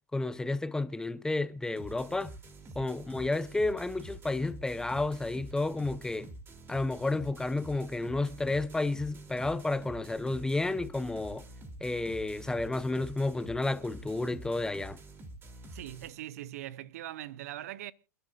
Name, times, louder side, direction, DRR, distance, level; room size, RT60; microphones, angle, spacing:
voice 1, 0.1-2.3 2.7-6.3 6.7-11.5 11.8-15.0, left 2 dB, 5° left, 0.7 m, -31 dB
sound 1, 1.8-16.1, right 1 dB, 25° right, 3.1 m, -47 dB
voice 2, 15.7-17.9, right 13 dB, 65° right, 0.7 m, -41 dB
28.5 x 11.0 x 2.5 m
hypercardioid pair, 105°, 9 cm